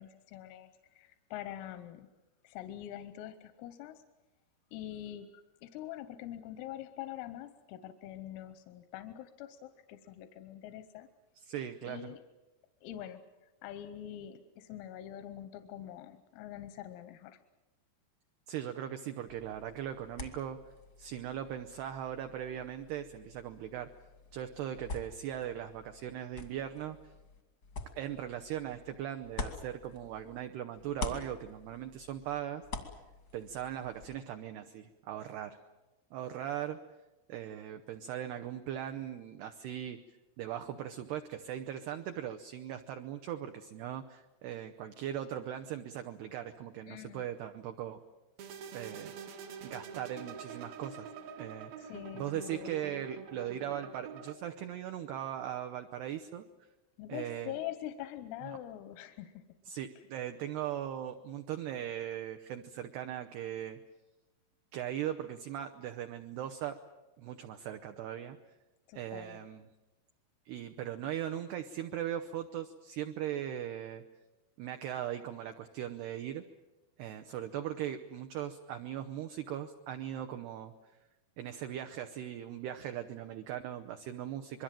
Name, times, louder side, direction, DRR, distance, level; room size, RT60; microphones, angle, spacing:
voice 1, 0.0-2.1 2.4-4.0 4.7-11.1 11.9-12.2 12.8-13.2 13.6-17.4 46.9-47.3 51.8-52.8 57.0-59.4 68.9-69.4, left 12 dB, 90° left, 10 dB, 3.6 m, -44 dB
voice 2, 11.4-12.1 18.5-20.6 21.0-23.9 24.3-27.0 28.0-32.6 33.3-35.6 36.1-36.8 37.3-40.0 40.4-48.0 48.7-49.1 49.6-51.1 51.4-56.5 57.1-57.6 58.4-58.6 59.7-63.8 64.7-66.8 67.2-68.4 68.9-69.6 70.5-74.0 74.6-76.4 77.0-80.7 81.4-84.6, right 10 dB, 80° right, 7 dB, 2.4 m, -39 dB
sound 1, 19.3-30.5 30.8-34.2, left 3 dB, 65° left, 0.9 m, -46 dB
sound 2, 48.4-54.4, right 6 dB, 65° right, 2.6 m, -46 dB
26.0 x 22.0 x 7.6 m, 1.1 s
omnidirectional pair, 5.8 m